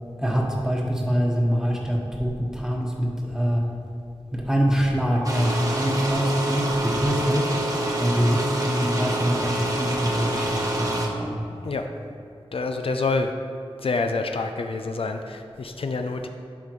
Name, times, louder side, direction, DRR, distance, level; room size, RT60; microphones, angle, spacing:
voice 1, 0.2-3.7 4.3-11.4, equal, 5° right, -1 dB, 1.2 m, -24 dB
sound 1, 5.2-11.1, right 1 dB, 35° right, 1.0 m, -27 dB
voice 2, 12.5-13.3 13.8-16.3, left 3 dB, 65° left, 5 dB, 0.4 m, -27 dB
10.5 x 5.2 x 3.2 m, 2.5 s
wide cardioid pair, 70°, 10 cm